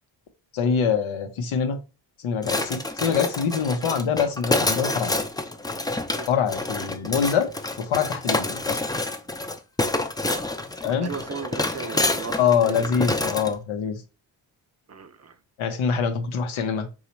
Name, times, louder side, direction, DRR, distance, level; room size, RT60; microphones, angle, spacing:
voice 1, 0.5-1.8 2.2-5.2 6.3-7.5 7.8-8.8 10.8-11.1 12.4-14.0 15.6-16.9, left 7 dB, 85° left, 0.7 m, -24 dB
sound 1, 2.4-13.5, left 2 dB, 10° left, 0.4 m, -28 dB
voice 2, 10.3-10.6 11.0-12.9 14.9-15.4, right 6 dB, 35° right, 0.6 m, -36 dB
2.9 x 2.4 x 4.3 m
supercardioid pair, 45°, 47 cm